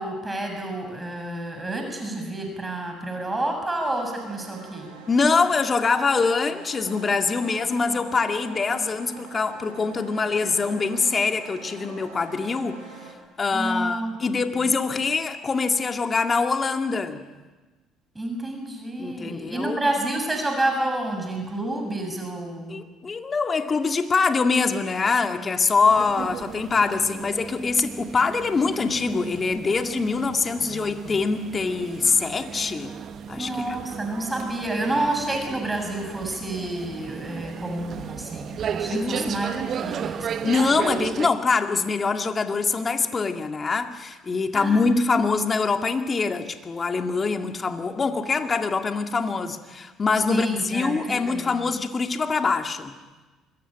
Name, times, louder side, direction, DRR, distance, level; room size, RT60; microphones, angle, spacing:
voice 1, 0.0-4.9 13.5-14.4 18.2-22.8 33.4-40.5 44.5-44.8 50.2-51.7, right 1 dB, 15° right, 3 dB, 7.3 m, -29 dB
sound 1, 4.1-13.1, right 4 dB, 85° right, 5.3 m, -44 dB
voice 2, 5.1-12.8 13.4-17.2 19.0-19.8 22.7-32.9 33.3-33.8 38.9-39.5 39.9-40.0 40.4-52.9, left 4 dB, 35° left, 6 dB, 2.2 m, -24 dB
sound 2, 25.9-41.3, right 7 dB, 50° right, 1.3 m, -34 dB
25.0 x 22.0 x 9.0 m, 1.3 s
hypercardioid pair, 60°, 0 cm